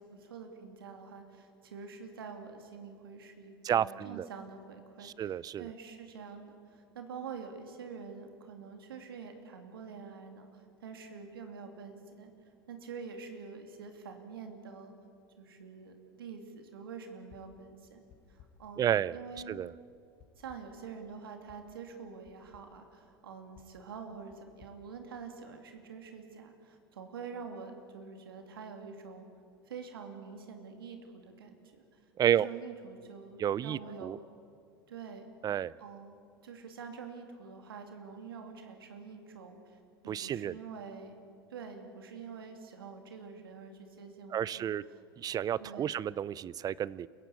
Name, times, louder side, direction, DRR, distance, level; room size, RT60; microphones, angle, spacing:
voice 1, 0.0-12.3 12.7-14.9 15.4-18.0 18.3-19.6 20.4-29.2 29.7-34.2 34.9-35.3 35.8-41.2 41.5-45.0 45.6-45.9, right 5 dB, 80° right, 5 dB, 2.8 m, -46 dB
voice 2, 3.6-4.3 5.0-5.7 18.8-19.2 19.5-19.7 32.2-32.5 33.4-34.2 35.4-35.7 40.1-40.5 44.3-44.8 45.2-47.1, right 10 dB, 30° right, 22 dB, 0.5 m, -31 dB
sound 1, 17.3-17.7 18.1-18.7 19.4-19.7 20.2-20.8 21.5-21.7 22.2-22.8 23.5-25.6, left 6 dB, 50° left, 4.7 m, -61 dB
28.5 x 16.0 x 8.6 m, 2.5 s
hypercardioid pair, 85°, 12 cm